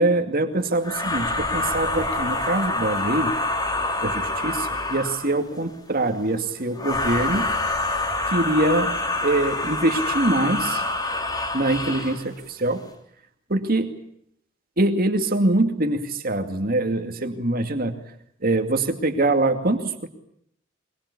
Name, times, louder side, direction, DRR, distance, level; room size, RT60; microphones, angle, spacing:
voice 1, 0.0-3.3 4.0-7.5 8.3-8.9 9.2-10.8 11.5-12.8 13.5-14.0 14.8-18.0 18.4-20.1, right 2 dB, 50° right, 6 dB, 2.4 m, -23 dB
sound 1, 0.8-5.4 6.8-12.2, left 2 dB, 20° left, 3.2 m, -26 dB
22.5 x 22.0 x 8.5 m, 0.70 s
head